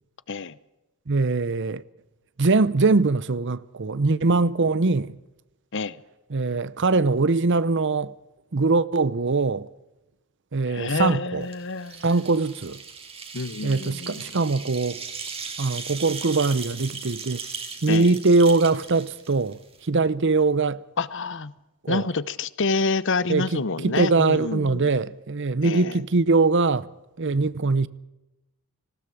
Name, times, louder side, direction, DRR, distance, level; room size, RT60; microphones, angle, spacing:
voice 1, 1.1-1.8 2.4-5.2 6.3-8.1 8.5-9.7 10.5-11.5 12.0-12.8 13.6-15.0 15.6-17.4 17.8-20.8 21.8-22.1 23.3-26.9 27.2-27.9, right 3 dB, 55° right, 0.7 m, -22 dB
voice 2, 10.7-12.0 13.3-14.2 17.9-18.1 21.0-21.5 21.9-24.9 25.6-26.0, left 3 dB, 55° left, 0.9 m, -28 dB
sound 1, 11.4-19.9, right 5 dB, 25° right, 2.2 m, -38 dB
19.0 x 17.0 x 8.6 m
head